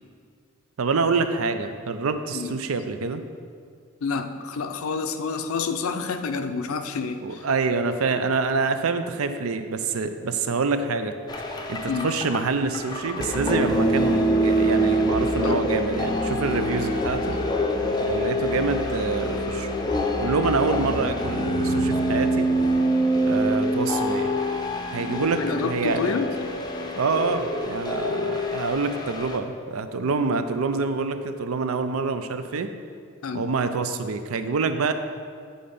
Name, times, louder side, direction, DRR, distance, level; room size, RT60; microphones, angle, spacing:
voice 1, 0.8-3.2 7.2-17.4 18.0-19.7 20.2-22.5 23.2-24.4 24.9-26.1 27.0-32.7 33.3-34.9, right 4 dB, 85° right, 9 dB, 0.5 m, -26 dB
voice 2, 4.0-7.4 11.9-12.1 15.4-15.6 25.4-26.3 33.2-33.4, left 5 dB, 80° left, 8 dB, 0.5 m, -28 dB
sound 1, 11.3-29.4, equal, 20° left, 0.5 m, -25 dB
8.5 x 3.8 x 5.4 m, 2.1 s
head